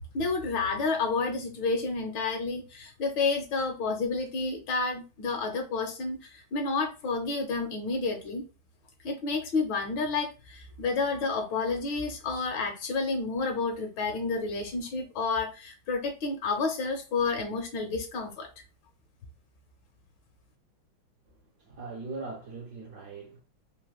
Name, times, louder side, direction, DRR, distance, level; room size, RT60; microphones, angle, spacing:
voice 1, 0.1-8.4 9.0-18.5, left 4 dB, 70° left, 1.2 m, -30 dB
voice 2, 21.6-23.4, right 3 dB, 70° right, 1.0 m, -40 dB
3.4 x 2.5 x 2.3 m
omnidirectional pair, 2.3 m